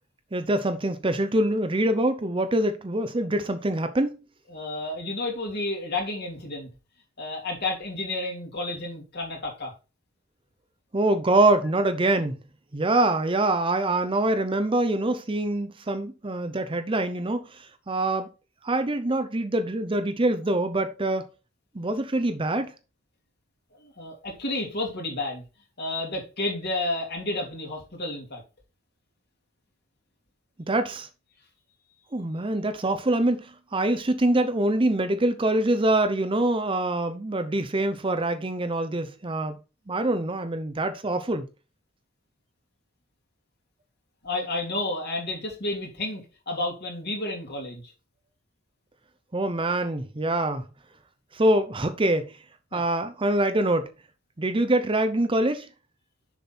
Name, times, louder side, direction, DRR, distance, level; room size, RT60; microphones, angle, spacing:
voice 1, 0.3-4.1 10.9-12.4 12.7-17.4 17.9-18.3 18.6-21.2 21.7-22.7 30.7-31.1 32.1-39.6 39.9-41.5 49.3-50.6 51.3-52.3 52.7-53.9 54.4-55.7, right 1 dB, 25° right, 0.7 m, -24 dB
voice 2, 4.5-6.7 7.2-9.7 23.8-25.4 25.8-28.4 44.2-47.8 52.7-52.8, left 2 dB, 50° left, 2.8 m, -31 dB
6.9 x 6.0 x 4.2 m
head